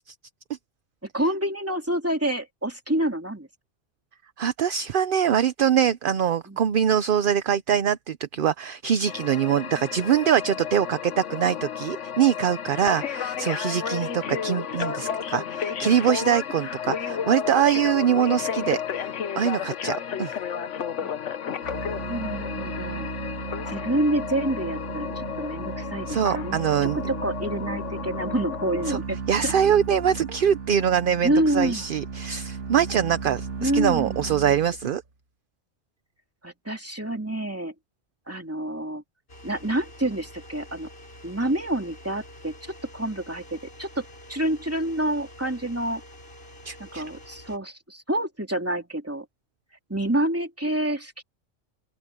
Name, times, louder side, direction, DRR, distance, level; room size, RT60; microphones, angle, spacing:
voice 1, 1.0-3.5 6.5-6.6 21.0-21.1 22.1-23.1 23.7-26.6 27.1-29.2 31.2-31.8 33.6-34.2 36.4-37.7 38.3-39.0 39.4-40.9 41.2-46.0 46.8-49.3 49.9-51.2, right 1 dB, 10° right, 2.8 m, -28 dB
voice 2, 4.4-18.8 19.4-20.3 26.1-27.1 28.9-29.0 29.3-35.0 46.6-47.0, right 9 dB, 55° right, 0.7 m, -23 dB
sound 1, 9.1-29.0, left 8 dB, 85° left, 1.3 m, -32 dB
sound 2, 21.6-35.0, right 5 dB, 80° right, 2.3 m, -36 dB
sound 3, 39.3-47.6, left 1 dB, 55° left, 7.2 m, -47 dB
open air
omnidirectional pair, 1.2 m